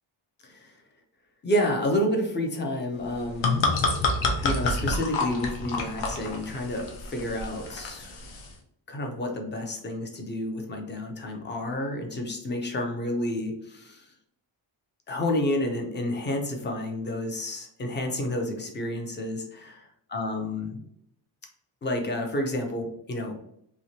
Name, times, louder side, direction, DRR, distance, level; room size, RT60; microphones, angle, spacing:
voice 1, 0.4-0.8 1.4-3.7 4.4-8.2 8.9-14.1 15.1-20.8 21.8-23.4, left 1 dB, 25° left, 2 dB, 0.4 m, -30 dB
sound 1, 3.1-8.5, left 3 dB, 70° left, 0.8 m, -28 dB
3.1 x 2.8 x 2.7 m, 0.72 s
wide cardioid pair, 180°, 48 cm